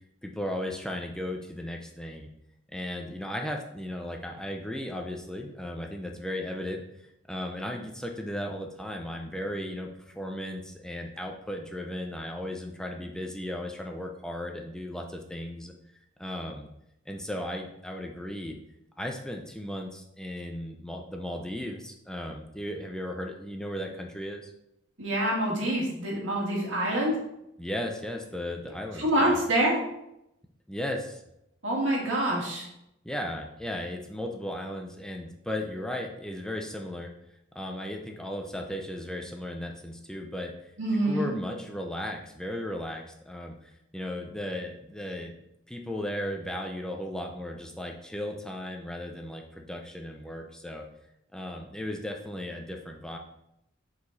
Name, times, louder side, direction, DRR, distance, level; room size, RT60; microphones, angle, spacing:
voice 1, 0.2-2.3 2.7-6.8 7.3-15.7 16.2-16.7 17.1-18.6 19.0-24.5 27.6-29.4 30.7-31.2 33.0-37.1 37.5-40.5 41.0-45.4 45.7-50.8 51.3-53.2, left 1 dB, 5° left, 2 dB, 0.6 m, -36 dB
voice 2, 25.0-27.2 29.0-29.8 31.6-32.7 40.8-41.3, right 1 dB, 80° right, -3 dB, 2.4 m, -26 dB
6.9 x 4.8 x 4.1 m, 0.81 s
head